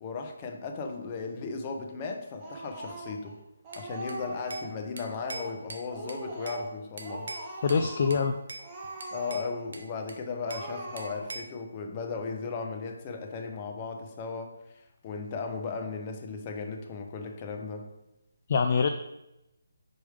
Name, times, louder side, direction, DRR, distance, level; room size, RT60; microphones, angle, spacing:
voice 1, 0.0-3.4 3.8-7.3 9.1-14.5 15.0-17.9, left 4 dB, 25° left, 4 dB, 0.9 m, -36 dB
Speech, 2.4-3.3 3.6-4.8 5.1-5.6 5.9-6.7 7.0-8.2 8.6-9.7 10.0-10.1 10.4-11.5, right 1 dB, 20° right, 1.4 m, -41 dB
Bell / Glass, 3.7-4.7 5.0-6.6 7.0-7.8 8.1-8.7 9.0-10.7 11.0-11.6, right 2 dB, 65° right, 1.0 m, -43 dB
voice 2, 7.6-8.4 18.5-18.9, left 5 dB, 45° left, 6 dB, 0.4 m, -24 dB
5.2 x 4.7 x 5.0 m, 0.90 s
figure-of-eight pair, 155°, 0 cm